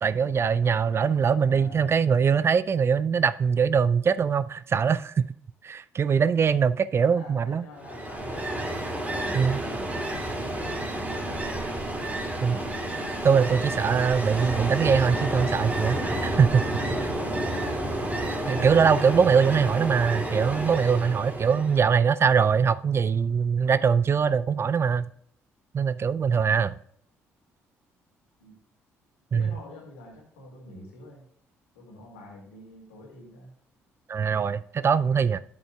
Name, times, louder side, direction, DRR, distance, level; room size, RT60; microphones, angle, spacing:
voice 1, 0.0-5.2 5.6-7.6 9.3-9.6 12.4-12.6 13.2-17.1 18.5-25.0 25.7-26.7 29.3-29.5 34.1-35.4, right 6 dB, 40° right, 0.4 m, -22 dB
voice 2, 1.3-2.0 6.9-8.5 9.0-9.8 10.1-11.5 11.9-13.0 19.7-20.1 28.4-28.5 29.3-31.3 31.7-33.5, left 1 dB, 80° left, 2.3 m, -46 dB
Ocean, 7.8-21.9, right 1 dB, 20° right, 2.6 m, -30 dB
10.5 x 8.0 x 2.3 m
hypercardioid pair, 45°, 7 cm